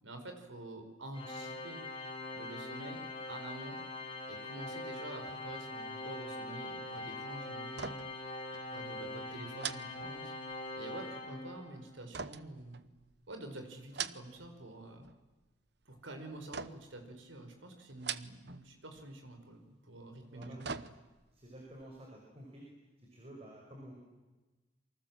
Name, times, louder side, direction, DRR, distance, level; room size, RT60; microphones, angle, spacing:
voice 1, 0.0-1.8 2.3-3.0 3.3-3.8 4.3-8.0 8.7-10.3 10.8-12.8 13.3-15.0 15.8-20.8, right 2 dB, 85° right, 6 dB, 5.0 m, -48 dB
Organ, 1.1-11.9, left 2 dB, 30° left, 3.8 m, -43 dB
sound 1, 7.7-8.3 8.5-8.7 9.6-10.7 12.1-13.2 13.8-14.6 14.9-15.4 16.5-17.0 17.9-18.7 18.9-19.1 20.2-21.3 21.8-21.9, right 7 dB, 60° right, 0.9 m, -43 dB
voice 2, 20.3-20.8 21.3-22.6 23.0-23.9, right 1 dB, 30° right, -1 dB, 5.5 m, -51 dB
27.5 x 24.5 x 7.6 m, 1.2 s
head